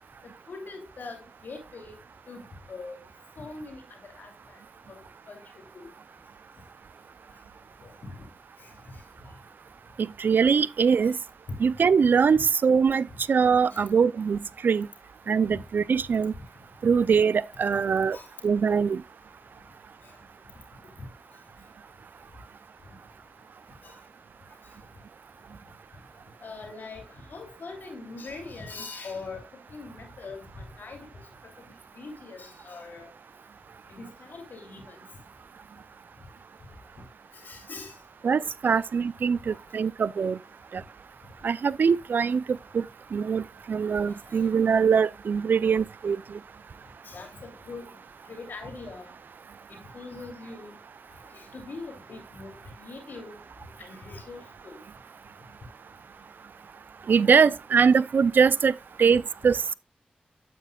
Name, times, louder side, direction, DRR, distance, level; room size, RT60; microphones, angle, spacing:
voice 1, 0.2-2.0 2.3-3.0 3.4-3.8 4.2-4.6 4.9-5.0 5.3-5.4 5.7-5.9 7.8-8.2 8.6-8.7 11.0-11.1 13.7-13.8 15.5-15.6 18.1-18.3 21.0-21.1 23.8-23.9 26.4-27.0 27.3-29.4 29.7-31.1 31.9-33.1 33.9-35.0 37.4-37.9 38.7-38.8 39.5-39.6 47.0-47.9 48.3-49.1 49.7-50.7 51.3-53.4 53.8-54.8, left 3 dB, 75° left, 2.9 m, -42 dB
voice 2, 10.0-11.2 11.6-14.9 15.3-16.3 16.8-18.2 18.4-19.0 38.2-40.4 40.7-40.8 41.4-42.8 43.1-46.4 57.1-59.7, right 6 dB, 75° right, 0.4 m, -23 dB
9.3 x 8.2 x 2.3 m
cardioid pair, 40°, 3 cm